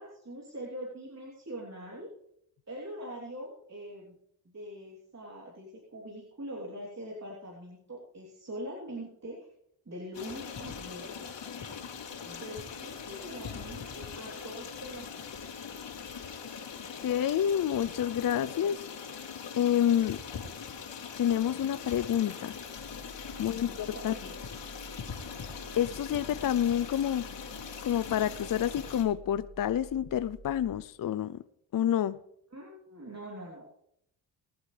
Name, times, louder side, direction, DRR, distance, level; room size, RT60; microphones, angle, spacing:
voice 1, 0.0-2.1 2.7-4.1 4.4-9.5 9.8-11.5 12.2-15.2 23.3-24.4 32.5-33.7, equal, 35° right, -4 dB, 3.5 m, -43 dB
Stream, 10.1-29.0, left 6 dB, 65° left, 3.2 m, -42 dB
voice 2, 17.0-18.8 19.6-20.2 21.2-22.6 23.4-24.1 25.8-27.2 27.8-31.4 31.7-32.2, left 10 dB, 45° left, 15 dB, 0.6 m, -28 dB
sound 1, 22.8-30.8, right 2 dB, 10° left, 2.6 m, -50 dB
22.0 x 8.1 x 3.4 m, 0.72 s
supercardioid pair, 55°, 47 cm